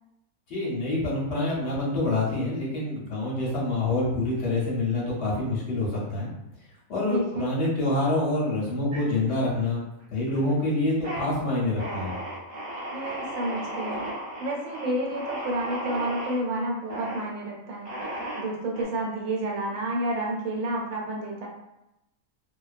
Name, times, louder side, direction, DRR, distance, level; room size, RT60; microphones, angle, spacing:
voice 1, 0.5-6.3 6.9-9.8 10.1-12.1, left 2 dB, 60° left, -4 dB, 0.9 m, -26 dB
voice 2, 7.1-7.5 12.9-14.0 14.4-17.9 18.4-21.5, right 1 dB, 75° right, -1 dB, 1.0 m, -30 dB
sound 1, 8.9-9.7 10.0-10.5 10.9-11.3 11.8-16.4 16.9-17.2 17.8-18.8, right 1 dB, 35° right, 0.9 m, -35 dB
2.3 x 2.2 x 2.4 m, 0.89 s
omnidirectional pair, 1.5 m